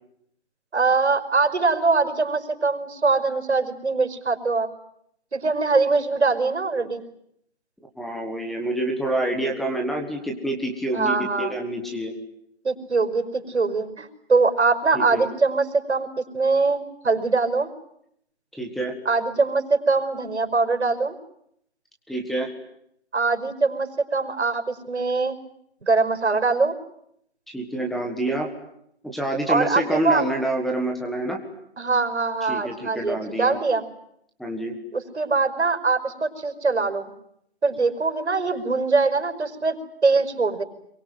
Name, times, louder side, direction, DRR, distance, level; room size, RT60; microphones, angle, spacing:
voice 1, 0.7-4.7 5.3-7.0 10.9-11.5 12.6-16.1 16.3-17.7 19.1-21.2 23.1-25.4 25.8-26.7 29.5-30.2 31.8-33.8 34.9-37.1 37.6-40.6, right 4 dB, 90° right, 7 dB, 5.4 m, -22 dB
voice 2, 8.0-12.1 14.9-15.3 18.6-18.9 22.1-22.5 27.5-28.5 29.0-31.4 32.5-33.6 34.4-34.7, right 1 dB, ahead, 2 dB, 1.6 m, -27 dB
27.0 x 23.5 x 9.4 m, 0.73 s
hypercardioid pair, 165°, 33 cm